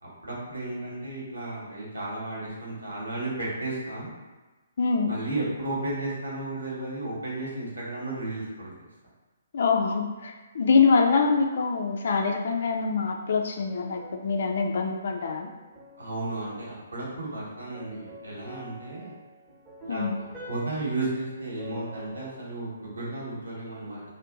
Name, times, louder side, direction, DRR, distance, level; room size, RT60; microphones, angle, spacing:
voice 1, 0.0-4.1 5.0-8.7 16.0-19.1 19.8-20.1 20.4-24.0, right 2 dB, 80° right, -5 dB, 1.2 m, -33 dB
voice 2, 4.8-5.1 9.5-15.5 19.9-20.2, left 5 dB, 55° left, 4 dB, 0.4 m, -24 dB
sound 1, 13.7-16.8 17.6-23.2, right 1 dB, 5° right, 1.0 m, -47 dB
2.6 x 2.1 x 3.6 m, 1.2 s
figure-of-eight pair, 130°, 0 cm